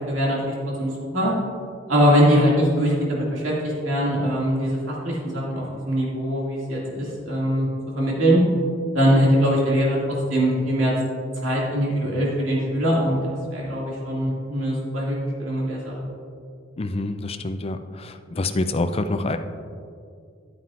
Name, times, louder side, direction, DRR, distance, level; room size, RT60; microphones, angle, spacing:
voice 1, 0.1-1.3 1.9-3.5 3.8-7.7 8.0-8.4 8.9-10.0 10.3-10.9 11.4-13.2 13.5-15.9, equal, 85° right, -4 dB, 2.3 m, -22 dB
voice 2, 16.8-19.4, left 2 dB, 30° left, 9 dB, 0.4 m, -26 dB
11.5 x 9.1 x 2.5 m, 2.3 s
head